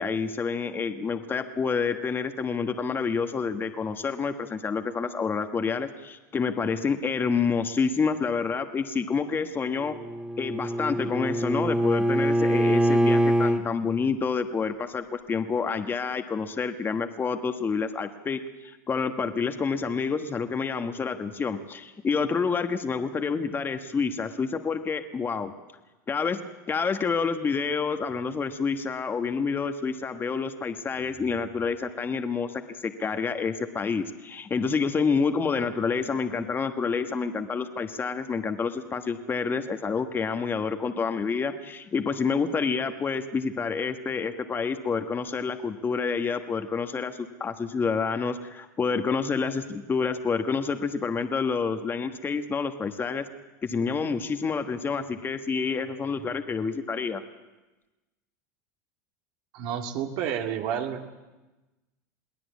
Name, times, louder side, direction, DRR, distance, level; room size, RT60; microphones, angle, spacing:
voice 1, 0.0-10.0 10.4-25.5 26.1-26.4 26.7-53.2 53.6-57.2, left 5 dB, 25° left, 7 dB, 1.4 m, -28 dB
Bowed string instrument, 9.8-13.6, right 1 dB, 10° right, 2.1 m, -24 dB
voice 2, 59.5-61.1, right 9 dB, 65° right, 4 dB, 2.3 m, -30 dB
22.5 x 17.0 x 8.4 m, 1.1 s
hypercardioid pair, 100°, 9 cm